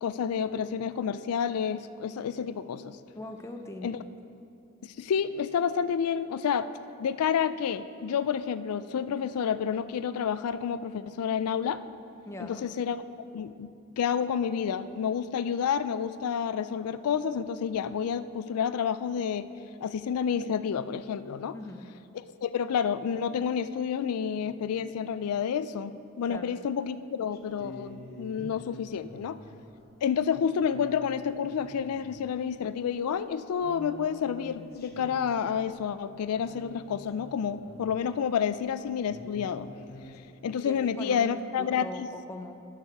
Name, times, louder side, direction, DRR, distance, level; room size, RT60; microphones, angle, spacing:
voice 1, 0.0-3.0 3.8-4.0 4.8-6.7 7.0-11.8 12.4-13.0 13.3-13.7 14.0-19.5 19.8-21.6 22.1-29.4 30.0-39.7 40.4-42.1, left 7 dB, 90° left, 13 dB, 0.4 m, -29 dB
voice 2, 3.1-4.0 12.2-12.6 21.5-21.9 26.3-26.6 40.6-41.3 41.6-42.6, left 1 dB, 10° left, 5 dB, 0.4 m, -41 dB
sound 1, 27.3-38.4 38.7-38.8 39.1-40.2, left 1 dB, 45° left, 0.8 m, -47 dB
12.0 x 6.6 x 4.6 m, 2.6 s
head